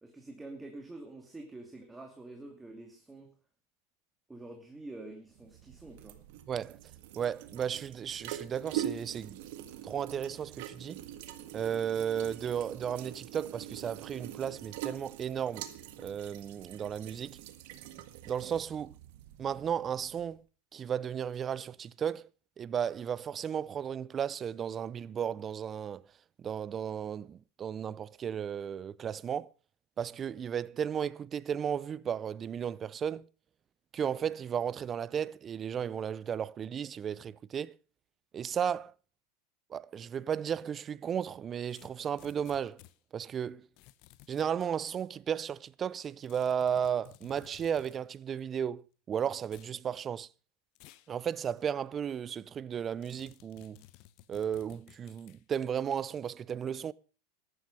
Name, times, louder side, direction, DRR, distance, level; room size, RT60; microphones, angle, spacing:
voice 1, 0.0-3.3 4.3-6.2, right 2 dB, 10° right, 2.6 m, -47 dB
sound 1, 5.3-20.4, right 11 dB, 65° right, 1.7 m, -44 dB
voice 2, 6.5-6.8 7.2-9.4 9.8-11.0 11.5-15.7 16.0-17.4 18.2-18.9 19.4-20.4 20.7-22.3 22.6-26.0 26.4-29.5 30.0-33.3 33.9-37.8 38.3-38.9 39.7-42.8 43.1-43.7 44.3-48.8 49.1-50.3 51.1-53.8 54.3-56.9, right 8 dB, 30° right, 0.6 m, -34 dB
sound 2, 41.7-43.0 43.8-44.7 46.2-48.0 49.4-49.8 50.8-51.1 51.6-51.7 53.0-55.4, left 15 dB, 55° left, 1.0 m, -57 dB
14.0 x 11.5 x 5.3 m
hypercardioid pair, 105°, 0 cm